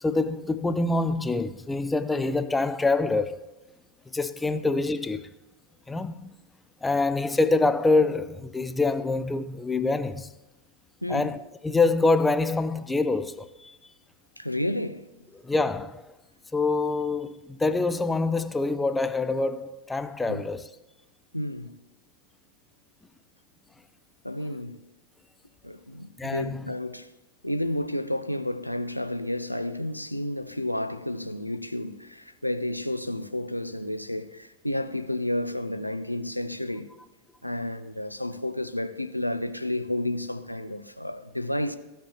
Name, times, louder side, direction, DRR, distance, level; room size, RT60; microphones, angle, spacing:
voice 1, 0.0-3.5 4.1-5.3 5.9-6.3 6.8-10.3 11.1-11.4 11.6-13.8 15.4-16.1 16.5-20.7 26.2-26.6, left 3 dB, 10° left, 0.4 m, -25 dB
voice 2, 11.0-11.4 14.4-15.2 20.3-20.5 21.3-21.8 24.2-24.8 25.6-27.1 27.4-36.9 37.4-41.8, left 1 dB, 90° left, 0.4 m, -31 dB
15.0 x 5.2 x 2.9 m
figure-of-eight pair, 90°, 0 cm